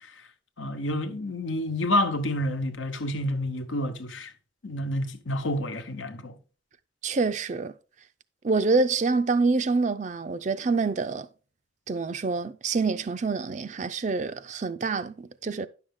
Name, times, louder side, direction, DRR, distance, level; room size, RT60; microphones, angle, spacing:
voice 1, 0.6-4.3 4.6-6.4, left 1 dB, 85° left, 1.0 m, -29 dB
voice 2, 7.0-7.7 8.4-11.3 11.9-15.7, right 4 dB, 40° right, 0.4 m, -26 dB
10.5 x 6.4 x 3.7 m
head